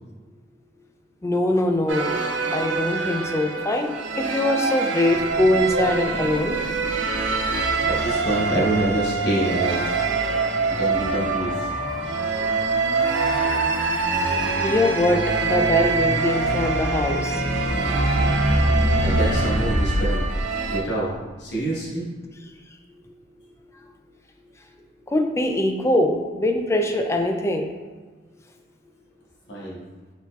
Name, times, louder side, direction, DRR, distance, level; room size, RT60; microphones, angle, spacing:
voice 1, 1.2-2.2 2.5-6.6 14.6-17.4 25.1-27.7, left 1 dB, 15° left, 4 dB, 0.3 m, -22 dB
sound 1, 1.9-20.8, right 4 dB, 80° right, 0.5 m, -25 dB
sound 2, 5.2-21.3, equal, 60° right, 0.8 m, -28 dB
voice 2, 7.5-9.8 10.7-11.7 19.0-20.3 20.7-21.1 21.4-22.1 29.5-29.8, right 1 dB, 70° left, -5 dB, 1.2 m, -26 dB
4.3 x 4.0 x 2.3 m, 1.4 s
head